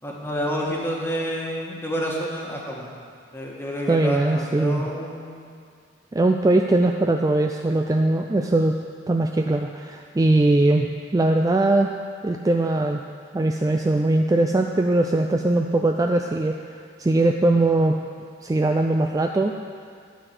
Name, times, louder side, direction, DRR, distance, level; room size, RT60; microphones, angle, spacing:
voice 1, 0.0-2.9 3.3-5.4, equal, 15° left, -3 dB, 1.6 m, -29 dB
voice 2, 3.9-4.8 6.1-8.8 9.1-11.9 12.2-13.0 13.3-16.5 17.0-18.0 18.4-19.5, right 2 dB, 20° right, 3 dB, 0.3 m, -20 dB
12.5 x 4.9 x 8.1 m, 2.2 s
head